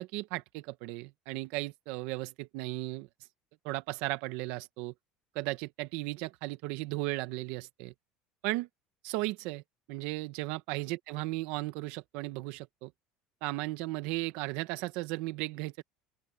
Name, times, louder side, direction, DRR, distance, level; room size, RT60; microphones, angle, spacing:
voice 1, 0.0-3.1 3.6-4.9 5.3-7.9 8.4-8.7 9.0-9.6 9.9-12.9 13.4-15.8, right 20 dB, 75° right, 1.2 m, -35 dB
open air
supercardioid pair, 115°, 3 cm